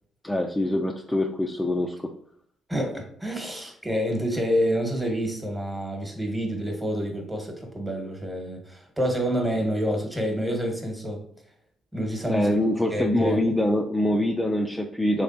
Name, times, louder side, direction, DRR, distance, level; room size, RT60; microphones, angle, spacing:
voice 1, 0.2-2.1 12.3-15.2, left 1 dB, 10° left, 1 dB, 0.4 m, -24 dB
voice 2, 2.7-11.2 11.9-12.5 12.9-13.4, equal, 10° right, 2 dB, 1.2 m, -28 dB
3.5 x 3.3 x 2.5 m, 0.67 s
cardioid pair, 85°, 0 cm